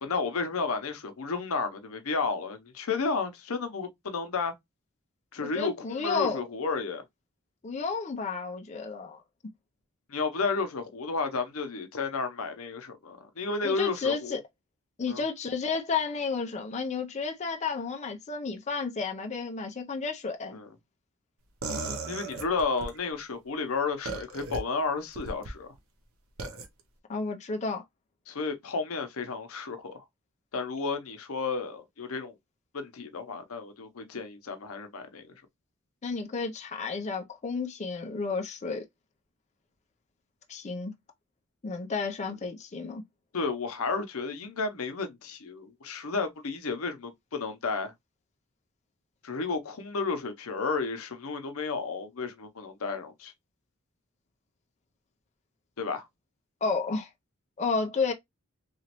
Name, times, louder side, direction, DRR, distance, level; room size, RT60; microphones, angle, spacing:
voice 1, 0.0-4.5 5.3-7.0 10.1-14.4 15.1-15.2 20.5-20.7 22.1-25.7 28.3-30.0 30.5-32.3 32.7-35.2 43.3-47.9 49.2-53.3 55.8-56.1, left 4 dB, 85° left, 0.7 m, -32 dB
voice 2, 5.5-6.4 7.6-9.2 13.6-14.4 15.0-20.6 27.1-27.8 36.0-38.8 40.5-40.9 41.6-43.0 56.6-57.1 57.6-58.1, left 4 dB, 35° left, 0.5 m, -31 dB
Short burps, 21.6-23.0 24.1-24.6 25.2-25.5 26.4-26.7, right 3 dB, 90° right, 0.7 m, -35 dB
3.0 x 2.4 x 2.9 m
head